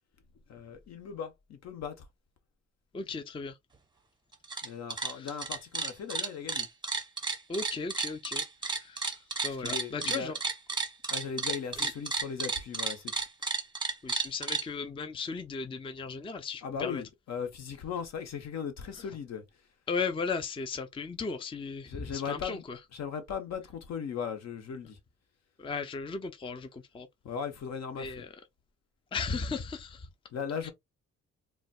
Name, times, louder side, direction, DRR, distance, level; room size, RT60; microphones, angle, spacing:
voice 1, 0.5-2.0 4.6-6.7 9.5-10.3 11.1-13.2 16.6-19.4 21.9-22.6 22.9-25.0 27.2-28.2 30.3-30.7, left 7 dB, 60° left, 1.0 m, -38 dB
voice 2, 2.9-3.6 5.1-5.4 7.5-8.4 8.7-9.1 9.4-10.4 11.8-11.9 14.0-17.0 19.0-19.1 19.9-22.8 25.6-27.1 28.0-28.3 29.1-30.1 30.6-30.7, left 4 dB, 15° left, 0.5 m, -36 dB
sound 1, 4.3-4.7 4.9-14.6, right 4 dB, 15° right, 0.8 m, -32 dB
3.9 x 2.2 x 2.3 m
cardioid pair, 90°, 30 cm